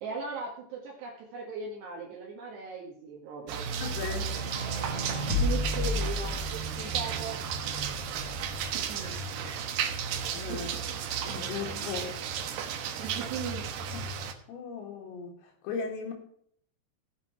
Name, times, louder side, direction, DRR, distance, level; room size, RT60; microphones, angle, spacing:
voice 1, 0.0-3.7 5.4-6.4 6.9-7.4 8.7-9.2 10.5-11.0 13.0-13.7, right 5 dB, 65° right, -1 dB, 3.3 m, -38 dB
sound 1, 3.5-14.3, right 7 dB, 80° right, 2.1 m, -34 dB
voice 2, 3.8-4.4 6.8-7.0 10.3-10.7 11.2-12.2 13.0-13.1 14.5-16.1, left 5 dB, 85° left, -2 dB, 4.8 m, -37 dB
sound 2, 4.1-6.9 7.7-8.7, left 3 dB, 50° left, 2.9 m, -33 dB
sound 3, 6.5-7.3 9.0-9.8 11.5-12.2, right 3 dB, 35° right, 2.6 m, -50 dB
16.0 x 8.2 x 4.5 m, 0.65 s
omnidirectional pair, 5.9 m